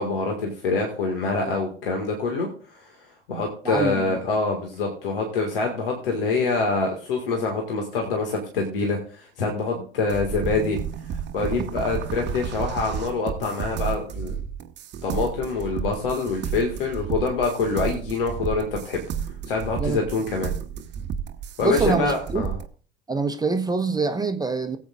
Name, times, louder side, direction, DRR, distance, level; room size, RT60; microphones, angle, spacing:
voice 1, 0.0-10.8 11.3-14.4 15.0-19.0 19.5-20.5 21.6-22.5, left 3 dB, 70° left, 1 dB, 2.0 m, -25 dB
voice 2, 3.6-4.0 19.8-20.1 21.6-22.4 23.1-24.8, right 4 dB, 15° right, 7 dB, 1.0 m, -25 dB
sound 1, 10.1-22.7, right 8 dB, 40° right, 1.0 m, -32 dB
19.0 x 8.3 x 2.5 m, 0.42 s
figure-of-eight pair, 65°, 29 cm